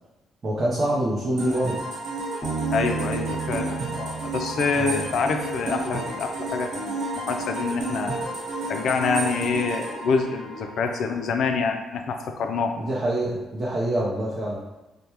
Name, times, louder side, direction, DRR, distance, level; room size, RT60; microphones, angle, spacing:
voice 1, 0.4-1.8 4.7-5.0 12.8-14.6, right 1 dB, 45° right, -5 dB, 0.6 m, -26 dB
sound 1, 1.4-11.1, right 2 dB, 75° right, 1.0 m, -31 dB
Bass guitar, 2.4-5.9, right 5 dB, 5° left, 1.1 m, -33 dB
voice 2, 2.7-8.2 8.7-12.7, left 5 dB, 70° left, 5 dB, 0.3 m, -26 dB
3.3 x 2.1 x 2.9 m, 1.1 s
cardioid pair, 90°, 0 cm